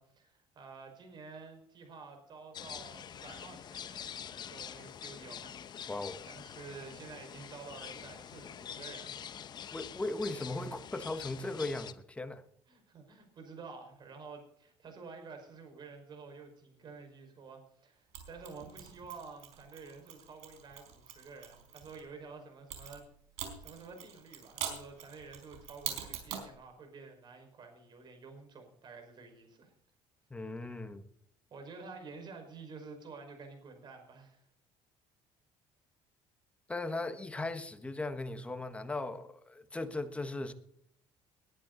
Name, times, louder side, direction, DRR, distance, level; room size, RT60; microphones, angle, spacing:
voice 1, 0.0-4.1 4.5-5.9 6.3-9.3 12.7-23.1 23.6-29.7 30.7-30.9 31.5-34.4, right 4 dB, 40° right, 5.2 m, -50 dB
sound 1, 2.5-11.9, left 9 dB, 40° left, 0.8 m, -46 dB
voice 2, 5.9-6.2 9.7-12.4 30.3-31.0 36.7-40.5, left 2 dB, 10° left, 1.3 m, -38 dB
Mechanisms, 18.1-22.0 22.7-26.5, right 9 dB, 80° right, 4.4 m, -44 dB
20.5 x 11.0 x 4.0 m
cardioid pair, 135°, 11 cm